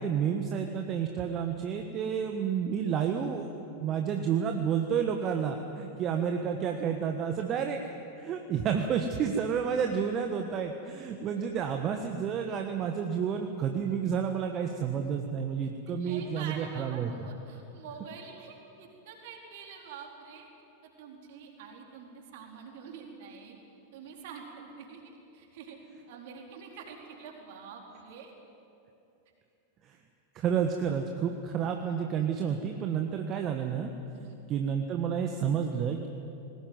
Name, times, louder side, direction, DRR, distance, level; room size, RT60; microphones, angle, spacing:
voice 1, 0.0-3.5 3.8-7.8 8.2-17.1 30.3-33.9 34.5-36.1, right 7 dB, 30° right, 4 dB, 1.3 m, -30 dB
voice 2, 15.9-20.5 21.0-23.6 23.9-25.8 26.1-28.3 34.1-34.4, right 6 dB, 50° right, 1 dB, 4.1 m, -46 dB
20.0 x 18.5 x 9.5 m, 2.7 s
figure-of-eight pair, 90°, 0 cm